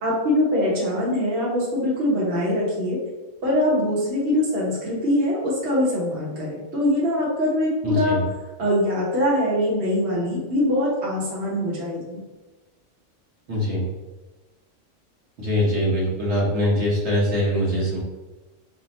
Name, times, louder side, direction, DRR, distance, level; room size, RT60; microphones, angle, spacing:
voice 1, 0.0-3.0 3.4-8.2 8.6-12.2, left 1 dB, 60° right, -6 dB, 1.2 m, -23 dB
voice 2, 7.8-8.2 13.5-13.9 15.4-18.0, left 1 dB, 75° right, -6 dB, 1.5 m, -22 dB
3.5 x 2.3 x 4.0 m, 1.2 s
omnidirectional pair, 1.3 m